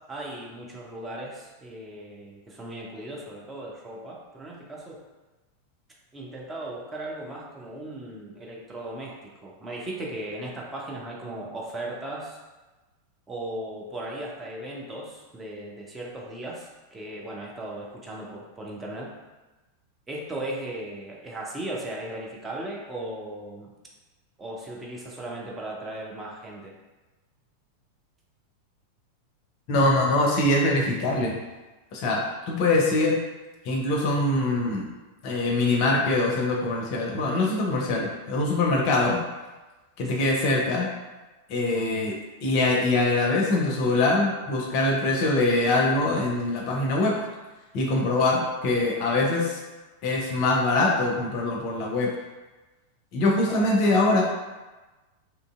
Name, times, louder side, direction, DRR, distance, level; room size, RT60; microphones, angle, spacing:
voice 1, 0.1-5.0 6.1-9.2 9.4-12.4 13.3-19.1 20.1-23.7 24.4-26.7 38.9-39.1 40.0-40.3 53.4-53.7, right 1 dB, 15° right, -3 dB, 0.5 m, -37 dB
voice 2, 29.7-31.4 31.9-33.2 33.7-34.9 35.2-39.2 40.0-40.9 41.5-42.1 42.4-47.1 47.7-49.6 50.0-52.1 53.1-54.2, left 2 dB, 45° left, -1 dB, 0.5 m, -23 dB
2.8 x 2.6 x 2.3 m, 1.2 s
figure-of-eight pair, 90°, 0 cm